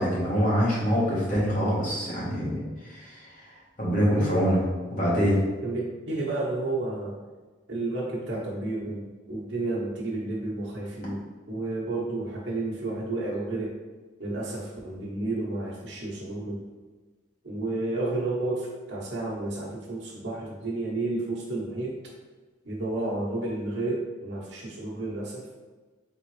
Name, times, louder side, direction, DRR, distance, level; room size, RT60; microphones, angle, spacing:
voice 1, 0.0-4.6 4.9-5.4, equal, 45° left, -7 dB, 1.4 m, -25 dB
voice 2, 4.1-4.4 5.6-7.1 7.7-11.2 11.5-13.7 14.2-16.6 17.4-21.9 22.6-25.4, right 2 dB, 70° right, -4 dB, 1.1 m, -31 dB
3.9 x 3.8 x 3.2 m, 1.3 s
head